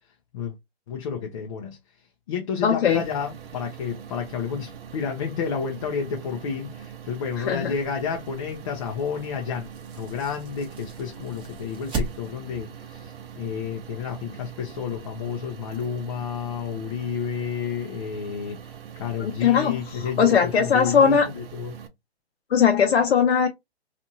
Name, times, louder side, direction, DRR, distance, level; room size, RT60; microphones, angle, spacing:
voice 1, 0.9-1.8 2.3-9.7 10.0-21.8, left 6 dB, 35° left, 0.4 m, -31 dB
voice 2, 2.6-3.0 7.4-7.7 19.2-21.3 22.5-23.5, left 7 dB, 80° left, 0.7 m, -20 dB
sound 1, 2.9-21.9, right 8 dB, 65° right, 0.7 m, -42 dB
sound 2, 7.0-12.6, right 3 dB, 15° right, 0.7 m, -38 dB
2.7 x 2.5 x 2.7 m
hypercardioid pair, 140°, 32 cm